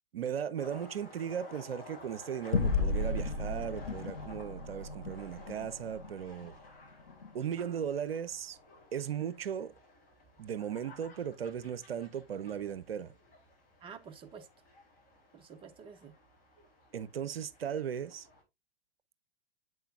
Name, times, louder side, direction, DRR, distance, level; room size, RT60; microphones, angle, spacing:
voice 1, 0.1-6.5 7.3-8.6 8.9-9.7 10.4-13.1 16.9-18.3, right 8 dB, 75° right, 0.6 m, -37 dB
sound 1, 0.6-18.4, left 2 dB, 30° left, 3.4 m, -54 dB
sound 2, 2.5-7.3, left 3 dB, 85° left, 0.6 m, -34 dB
voice 2, 7.6-7.9 13.8-14.5 15.3-16.1, right 6 dB, 15° right, 0.7 m, -49 dB
7.6 x 5.6 x 2.4 m
figure-of-eight pair, 100°, 30 cm